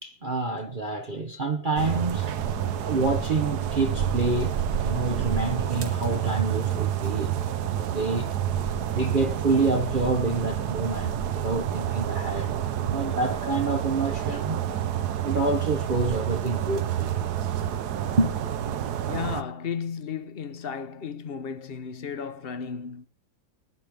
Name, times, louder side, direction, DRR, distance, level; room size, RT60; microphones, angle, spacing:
voice 1, 0.0-2.3 2.8-7.4 7.6-8.3 8.9-12.5 12.8-14.6 15.2-17.2 18.2-18.3, right 3 dB, 45° right, 0.6 m, -27 dB
sound 1, 1.8-19.4, right 10 dB, 60° right, 1.3 m, -28 dB
voice 2, 19.1-23.1, left 6 dB, 45° left, 0.8 m, -34 dB
21.5 x 10.5 x 3.5 m
omnidirectional pair, 2.1 m